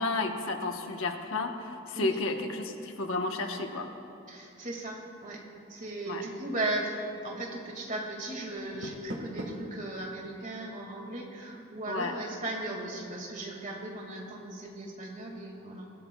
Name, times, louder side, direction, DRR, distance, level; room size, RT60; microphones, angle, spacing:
voice 1, 0.0-3.9 6.0-6.2 11.9-12.2, left 3 dB, 75° left, 4 dB, 1.0 m, -32 dB
voice 2, 4.3-5.4 5.7-15.9, right 2 dB, 35° right, 0 dB, 1.9 m, -37 dB
Door, 8.5-9.8, equal, 60° right, 1.4 m, -40 dB
21.5 x 16.5 x 2.3 m, 2.6 s
head